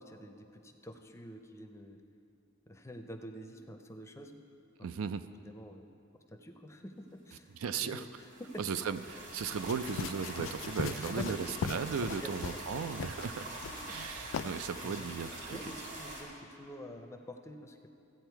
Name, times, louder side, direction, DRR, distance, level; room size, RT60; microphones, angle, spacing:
voice 1, 0.0-2.0 2.7-4.4 4.8-4.9 5.4-5.9 6.3-7.5 7.8-8.6 10.9-11.7 12.1-12.3 12.7-12.9 13.9-14.0 14.8-17.9, equal, 15° left, 5 dB, 0.5 m, -47 dB
voice 2, 4.8-5.3 7.5-8.0 8.6-13.6 13.9-15.6, right 6 dB, 80° right, 11 dB, 0.4 m, -36 dB
sound 1, 7.9-16.2, right 1 dB, 60° right, 2.4 m, -45 dB
sound 2, 9.0-14.7, equal, 30° right, 0.8 m, -58 dB
sound 3, 9.7-12.7 13.0-13.3 13.6-14.0 14.3-14.5, left 6 dB, 65° left, 0.3 m, -39 dB
13.5 x 8.8 x 4.6 m, 2.7 s
head